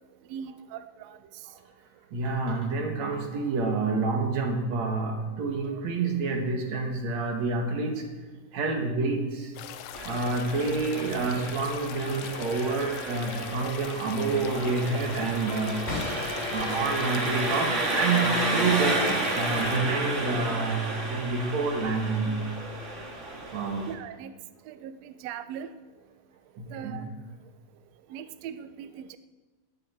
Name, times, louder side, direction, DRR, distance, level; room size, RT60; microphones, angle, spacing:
voice 1, 0.3-1.6 9.7-9.8 23.8-24.3 24.6-25.7 26.7-27.1 28.1-29.2, right 9 dB, 90° right, 11 dB, 1.4 m, -40 dB
voice 2, 2.1-8.0 8.5-9.5 10.0-15.8 16.5-22.3 23.5-23.9 26.8-27.0, right 3 dB, 55° right, 3 dB, 3.0 m, -28 dB
sound 1, 9.5-19.8, left 11 dB, 75° left, 1.7 m, -41 dB
Engine, 9.9-23.9, right 2 dB, 25° right, 2.0 m, -32 dB
sound 2, 15.9-21.8, left 3 dB, 20° left, 3.9 m, -40 dB
18.5 x 14.0 x 4.5 m, 1.3 s
omnidirectional pair, 3.9 m